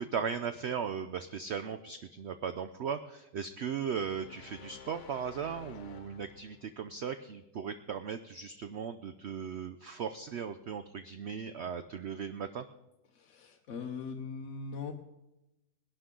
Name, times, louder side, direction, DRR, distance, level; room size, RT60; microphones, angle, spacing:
voice 1, 0.0-12.7, right 7 dB, 75° right, 10 dB, 0.6 m, -37 dB
sound 1, 4.0-6.8, left 6 dB, 85° left, 1.4 m, -52 dB
voice 2, 13.1-14.9, left 5 dB, 55° left, 2 dB, 1.0 m, -40 dB
19.5 x 11.5 x 3.7 m, 0.97 s
omnidirectional pair, 1.8 m